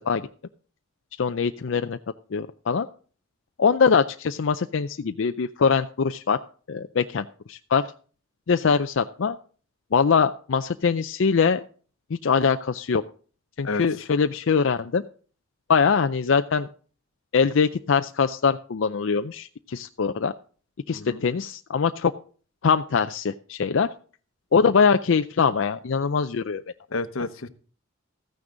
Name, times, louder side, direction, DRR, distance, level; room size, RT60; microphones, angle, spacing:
voice 1, 1.2-2.0 2.3-2.9 3.6-6.4 6.7-7.8 8.5-9.4 9.9-11.6 12.1-13.0 13.6-15.0 15.7-16.7 17.3-20.3 20.9-22.1 22.6-23.9 24.5-26.6, left 5 dB, 70° left, 8 dB, 0.5 m, -22 dB
voice 2, 26.9-27.5, left 3 dB, 90° left, 11 dB, 1.0 m, -30 dB
14.0 x 9.6 x 3.9 m, 0.41 s
head